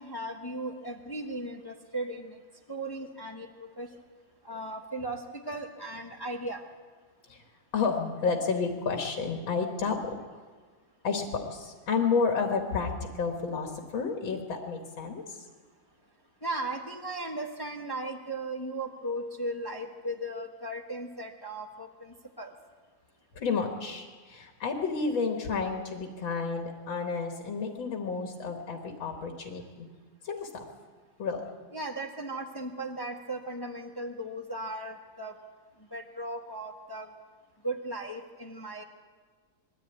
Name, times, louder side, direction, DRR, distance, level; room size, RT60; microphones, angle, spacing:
voice 1, 0.0-2.4 2.7-3.9 4.4-6.6 16.4-22.5 31.7-35.3 35.9-37.1 37.6-38.8, right 1 dB, 15° left, 2 dB, 1.1 m, -37 dB
voice 2, 7.7-10.4 11.0-15.5 23.3-29.9 30.2-30.6 31.2-31.4, left 5 dB, 80° left, 3 dB, 2.5 m, -31 dB
21.5 x 14.0 x 9.1 m, 1.5 s
omnidirectional pair, 2.1 m